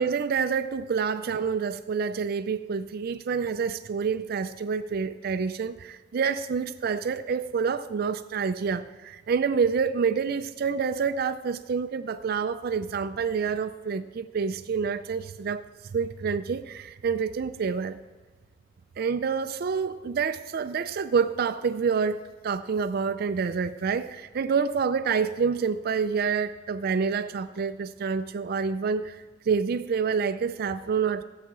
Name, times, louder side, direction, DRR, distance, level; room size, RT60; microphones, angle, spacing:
voice 1, 0.0-15.6 15.9-18.0 19.0-31.2, right 6 dB, 55° right, 10 dB, 0.4 m, -27 dB
13.5 x 5.7 x 7.5 m, 1.2 s
head